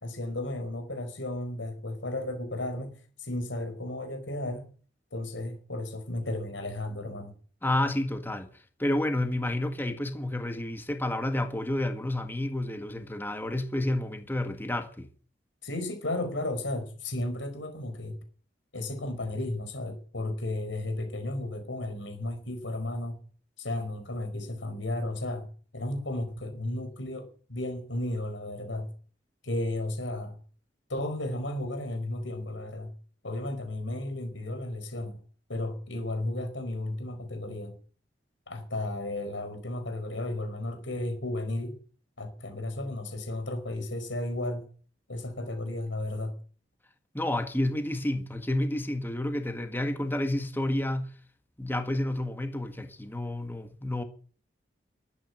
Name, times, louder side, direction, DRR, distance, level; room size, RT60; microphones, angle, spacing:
voice 1, 0.0-4.7 5.1-7.3 15.6-18.2 18.7-23.2 23.6-25.5 25.7-28.9 29.4-30.4 30.9-32.9 33.2-35.2 35.5-37.8 38.5-41.8 42.2-44.7 45.1-46.3, left 1 dB, 85° left, 4.8 m, -34 dB
voice 2, 7.6-8.5 8.8-15.1 47.1-51.1 51.6-54.0, left 1 dB, 10° left, 1.8 m, -30 dB
13.0 x 9.4 x 8.6 m
head